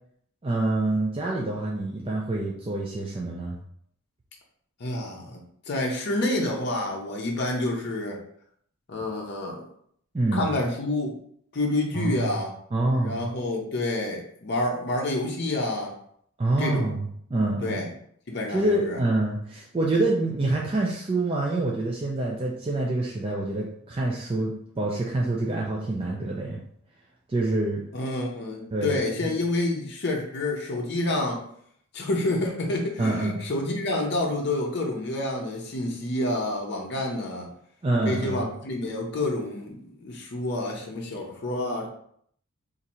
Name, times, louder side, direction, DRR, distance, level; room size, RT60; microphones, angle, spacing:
voice 1, 0.4-3.6 10.1-10.5 11.9-12.3 12.7-13.2 16.4-17.8 18.5-26.6 27.3-27.8 28.7-29.3 33.0-33.4 37.8-38.5, right 2 dB, 25° right, -3 dB, 0.4 m, -26 dB
voice 2, 4.8-5.4 5.7-8.2 8.9-9.7 10.3-11.2 11.5-12.5 13.0-15.9 16.6-16.9 17.6-17.9 18.3-19.0 27.9-31.4 31.9-37.5 38.1-41.9, left 2 dB, 50° left, -1 dB, 0.6 m, -28 dB
2.8 x 2.5 x 4.2 m, 0.67 s
head